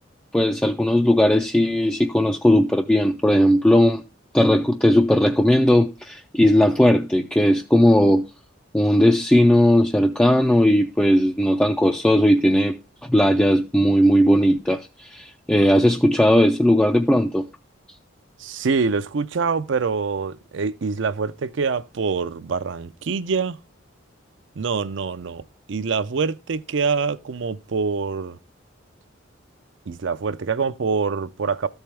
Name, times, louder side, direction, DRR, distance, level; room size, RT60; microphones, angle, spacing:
voice 1, 0.3-4.0 4.3-8.3 8.7-17.5, equal, 5° left, 0.3 m, -17 dB
voice 2, 18.4-23.6 24.6-25.4 25.7-28.4 29.9-31.7, right 5 dB, 65° right, 0.5 m, -25 dB
13.5 x 4.5 x 3.4 m
head